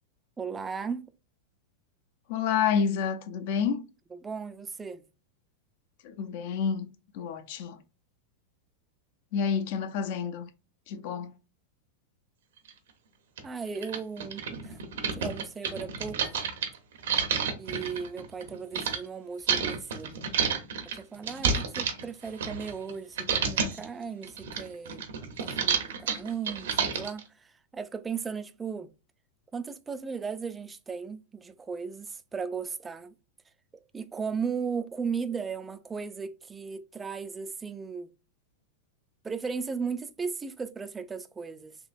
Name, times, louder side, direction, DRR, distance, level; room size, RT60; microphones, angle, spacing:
voice 1, 0.4-1.1 4.1-5.0 13.4-14.8 15.1-16.4 17.6-20.2 20.8-25.0 25.4-28.9 29.5-33.1 33.9-38.1 39.2-41.8, right 5 dB, 15° right, 0.3 m, -36 dB
voice 2, 2.3-3.8 6.0-6.9 7.1-7.8 9.3-10.5 10.9-11.3, left 7 dB, 55° left, 0.6 m, -29 dB
sound 1, 12.7-12.8 13.4-13.5 13.8-19.0 19.5-22.9 23.2-23.8 24.2-27.2, right 6 dB, 85° right, 0.9 m, -30 dB
3.7 x 2.9 x 2.5 m
supercardioid pair, 145°, 0 cm